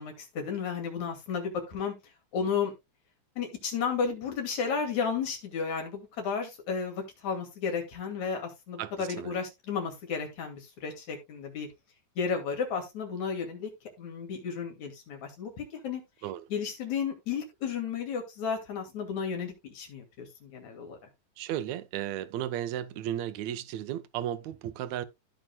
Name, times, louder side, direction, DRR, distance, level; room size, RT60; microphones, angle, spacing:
voice 1, 0.0-1.9 2.3-2.7 3.4-11.7 12.2-13.7 14.0-16.0 16.5-21.0, left 6 dB, 65° left, 3.7 m, -33 dB
voice 2, 8.8-9.4 16.2-16.5 21.4-25.1, right 11 dB, 75° right, 1.9 m, -34 dB
15.5 x 5.2 x 2.3 m
omnidirectional pair, 3.5 m